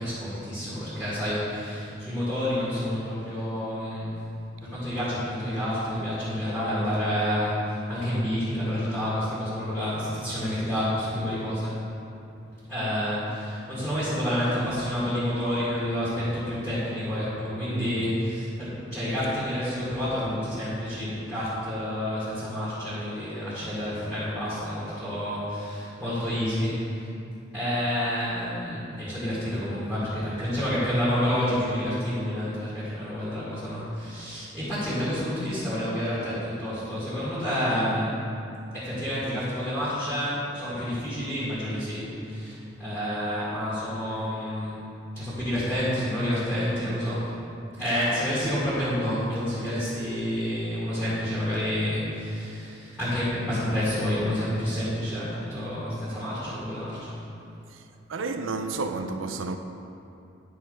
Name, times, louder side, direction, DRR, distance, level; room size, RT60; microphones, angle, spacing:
voice 1, 0.0-4.2 4.6-11.8 12.7-27.1 27.5-38.2 38.7-44.7 45.1-47.3 47.7-57.1, equal, 5° right, 1.9 m, -29 dB
voice 2, 58.1-59.6, right 3 dB, 85° right, 0.5 m, -31 dB
9.4 x 4.2 x 5.4 m
head